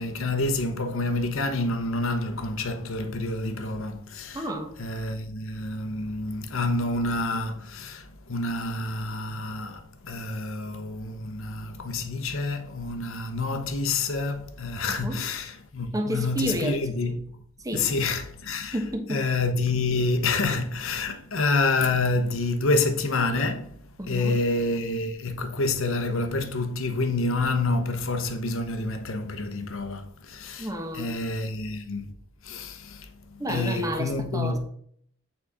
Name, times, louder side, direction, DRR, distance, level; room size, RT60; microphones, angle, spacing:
voice 1, 0.0-4.4 4.8-17.3 17.7-18.8 19.1-23.8 24.1-30.7 30.9-32.1 32.4-34.6, left 3 dB, 70° left, 1.0 m, -28 dB
voice 2, 4.3-4.8 14.9-15.2 15.9-16.8 17.6-17.9 18.7-19.2 24.0-24.4 30.6-31.1 33.4-34.6, equal, 15° right, 1.1 m, -30 dB
8.7 x 4.2 x 4.9 m
head